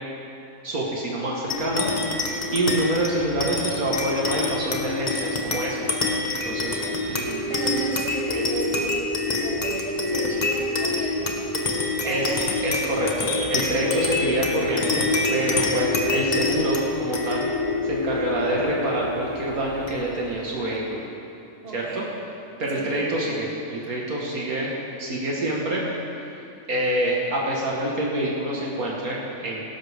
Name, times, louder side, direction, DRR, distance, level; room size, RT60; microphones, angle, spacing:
voice 1, 0.6-2.2 2.5-5.8 6.4-7.5 12.1-12.2 12.6-15.0 15.3-17.4 17.8-21.0 21.7-22.1 22.6-25.8 26.7-29.6, right 1 dB, 70° right, -3 dB, 2.0 m, -26 dB
sound 1, 1.5-20.3, left 2 dB, 30° left, 1.1 m, -26 dB
voice 2, 7.5-12.5 13.8-14.2 21.6-22.1 22.7-22.9, right 2 dB, 40° right, -3 dB, 2.1 m, -35 dB
17.5 x 11.5 x 3.5 m, 2.7 s
omnidirectional pair, 1.6 m